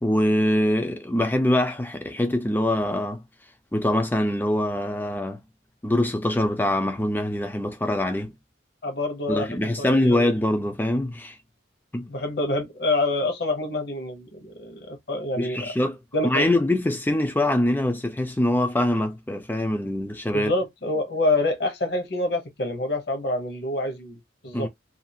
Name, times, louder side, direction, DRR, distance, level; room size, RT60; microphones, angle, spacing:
voice 1, 0.0-3.2 3.7-5.4 5.8-8.3 9.3-11.4 11.9-12.1 15.4-16.0 16.2-20.5 24.5-24.7, left 1 dB, 10° left, 0.4 m, -23 dB
voice 2, 8.8-10.3 12.1-15.7 16.1-16.5 20.3-24.7, left 2 dB, 55° left, 0.9 m, -27 dB
2.6 x 2.4 x 2.7 m
head